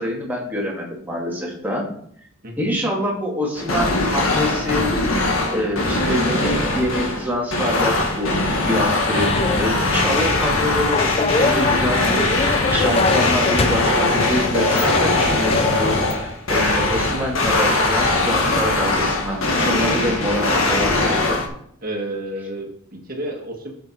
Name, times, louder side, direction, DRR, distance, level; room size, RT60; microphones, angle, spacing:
voice 1, 0.0-1.9 2.6-4.9 5.5-8.3 8.7-21.4, left 1 dB, 10° right, -3 dB, 2.2 m, -25 dB
sound 1, 3.6-21.5, left 2 dB, 70° left, 1.6 m, -21 dB
sound 2, 9.2-16.2, left 4 dB, 25° left, 0.3 m, -25 dB
voice 2, 21.8-23.7, right 1 dB, 40° right, 0 dB, 1.7 m, -30 dB
9.5 x 6.9 x 4.5 m, 0.67 s
head